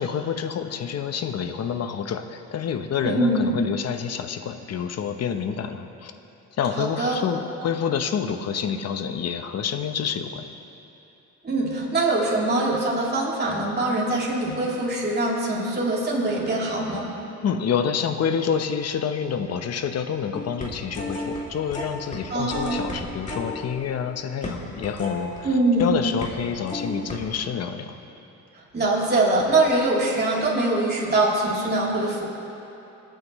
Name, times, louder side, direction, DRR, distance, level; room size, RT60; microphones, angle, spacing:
voice 1, 0.0-6.1 6.6-10.4 17.4-25.5 25.8-27.9, left 7 dB, 55° left, 7 dB, 0.9 m, -28 dB
voice 2, 3.0-3.5 6.8-7.2 11.4-17.1 22.3-22.8 25.4-25.9 28.7-32.3, right 2 dB, 35° right, -5 dB, 3.3 m, -23 dB
sound 1, 20.3-21.4 21.7-22.2 22.5-25.8 26.2-26.4 26.7-27.2, left 2 dB, 25° left, 2.6 m, -33 dB
23.0 x 9.1 x 3.1 m, 2.9 s
cardioid pair, 90°, 30 cm